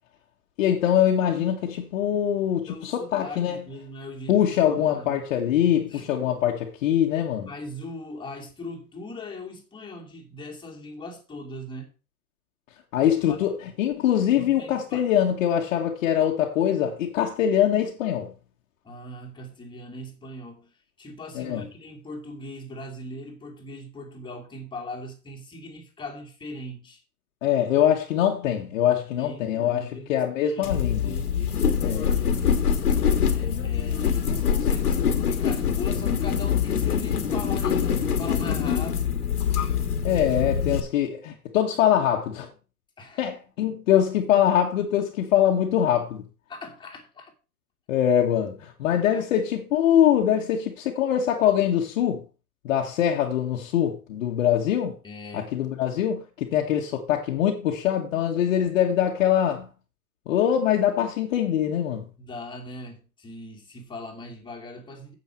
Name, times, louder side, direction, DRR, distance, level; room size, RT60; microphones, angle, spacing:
voice 1, 0.6-3.6 4.3-7.5 12.9-13.5 13.8-18.3 21.3-21.6 27.4-31.1 31.8-32.1 40.0-42.5 43.2-46.2 47.9-52.2 52.6-54.9 55.3-59.7 60.3-62.1, left 10 dB, 55° left, 1.7 m, -23 dB
voice 2, 2.7-4.4 4.7-5.2 5.9-6.1 7.4-11.9 13.3-13.5 14.3-15.1 18.8-27.0 29.1-32.9 33.2-39.3 43.0-43.3 46.5-47.3 49.1-49.2 55.0-55.5 62.2-65.1, left 1 dB, 10° left, 2.6 m, -40 dB
sound 1, 30.6-40.8, left 7 dB, 75° left, 1.8 m, -24 dB
9.3 x 7.9 x 4.6 m
hypercardioid pair, 120°, 46 cm